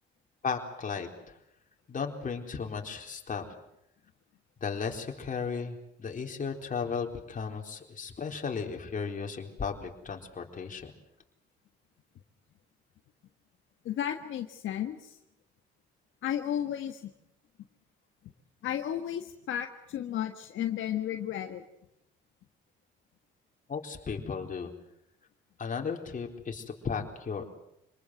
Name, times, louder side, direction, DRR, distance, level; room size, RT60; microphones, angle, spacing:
voice 1, 0.4-1.3 1.9-3.5 4.6-10.9 23.7-24.7 25.6-27.5, left 5 dB, 40° left, 3 dB, 4.1 m, -35 dB
voice 2, 13.8-15.1 16.2-17.1 18.6-21.6, left 10 dB, 75° left, 5 dB, 1.6 m, -33 dB
27.0 x 20.0 x 8.0 m, 0.80 s
cardioid pair, 90°, 20 cm